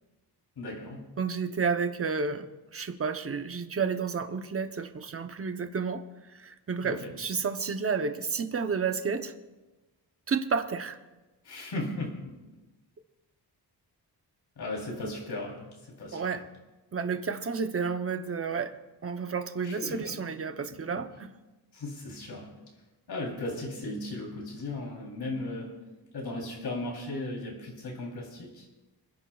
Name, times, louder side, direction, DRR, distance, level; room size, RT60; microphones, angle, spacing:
voice 1, 0.6-1.1 6.8-7.1 11.4-12.6 14.6-16.4 19.6-20.2 20.7-21.0 21.7-22.5 23.1-25.8 26.1-28.6, left 2 dB, 70° left, -2 dB, 3.4 m, -37 dB
voice 2, 1.2-6.0 6.3-9.3 10.3-11.0 16.1-16.4 16.9-18.7 19.0-21.3, right 5 dB, 35° right, 9 dB, 0.7 m, -31 dB
30.0 x 11.0 x 2.4 m, 1.2 s
wide cardioid pair, 165°, 40 cm